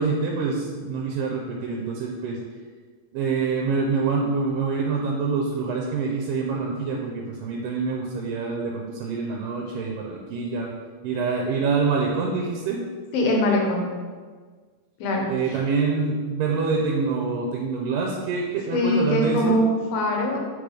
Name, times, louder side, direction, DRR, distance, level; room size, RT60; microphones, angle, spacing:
voice 1, 0.0-2.4 3.1-10.7 11.0-12.8 15.3-19.6, right 4 dB, 80° right, 0 dB, 2.3 m, -26 dB
voice 2, 13.1-13.9 15.0-15.3 18.7-20.4, left 1 dB, 90° left, 0 dB, 2.9 m, -22 dB
7.9 x 5.2 x 3.3 m, 1.5 s
omnidirectional pair, 4.0 m